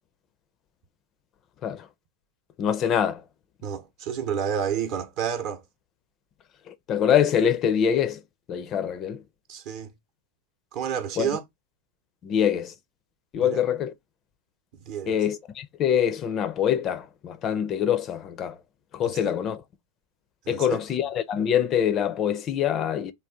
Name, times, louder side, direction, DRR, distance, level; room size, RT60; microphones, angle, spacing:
voice 1, 2.6-3.2 6.7-8.2 8.5-9.2 11.2-11.3 12.2-12.7 13.3-13.9 15.1-18.6 18.9-19.6 20.5-23.1, left 9 dB, 30° left, 0.4 m, -24 dB
voice 2, 3.6-5.6 9.5-9.9 10.7-11.4 13.4-13.6 14.8-15.2 19.0-19.4 20.5-20.8, right 8 dB, 45° right, 0.8 m, -30 dB
3.5 x 2.3 x 3.5 m
figure-of-eight pair, 90°, 0 cm